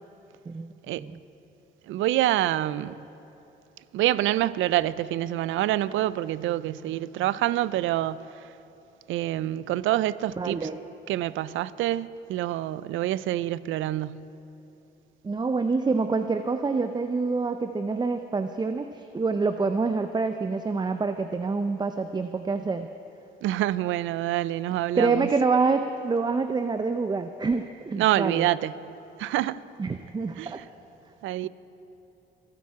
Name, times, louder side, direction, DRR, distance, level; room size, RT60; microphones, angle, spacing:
voice 1, 1.9-3.0 3.9-8.2 9.1-10.7 11.1-14.3 23.4-25.3 28.0-28.7 29.2-29.6 30.4-30.6 31.2-31.5, right 14 dB, 80° right, 0.4 m, -26 dB
voice 2, 10.4-10.8 15.2-22.9 24.9-28.5 29.8-30.6 31.4-31.5, right 4 dB, 20° right, 0.5 m, -26 dB
25.0 x 8.6 x 4.7 m
cardioid pair, 90°, 20 cm